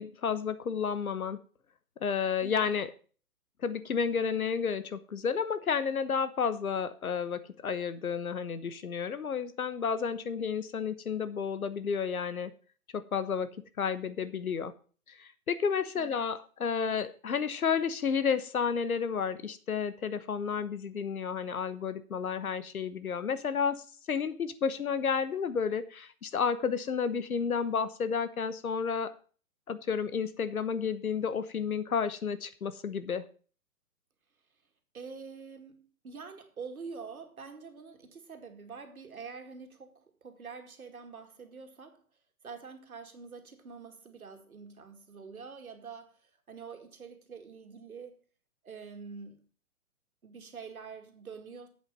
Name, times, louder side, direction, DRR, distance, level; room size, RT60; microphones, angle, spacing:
voice 1, 0.0-1.4 2.0-2.9 3.6-12.5 12.9-13.5 13.8-14.7 15.2-29.1 29.7-33.2, left 6 dB, 75° left, 1.2 m, -31 dB
voice 2, 2.4-2.8 15.9-16.3 34.9-42.0 42.4-48.2 48.6-49.5 50.2-51.7, right 5 dB, 75° right, 2.3 m, -46 dB
8.0 x 7.5 x 5.4 m
figure-of-eight pair, 125°, 43 cm